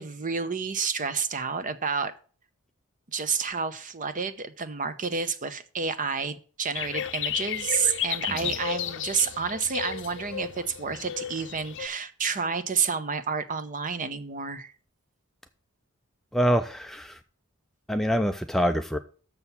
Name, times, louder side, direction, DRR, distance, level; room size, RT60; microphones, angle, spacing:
voice 1, 0.0-2.1 3.1-14.7, right 5 dB, 40° right, 0.8 m, -29 dB
sound 1, 6.8-11.9, left 10 dB, 55° left, 0.6 m, -33 dB
voice 2, 16.3-17.2 17.9-19.0, equal, ahead, 0.4 m, -25 dB
6.9 x 6.4 x 7.0 m
head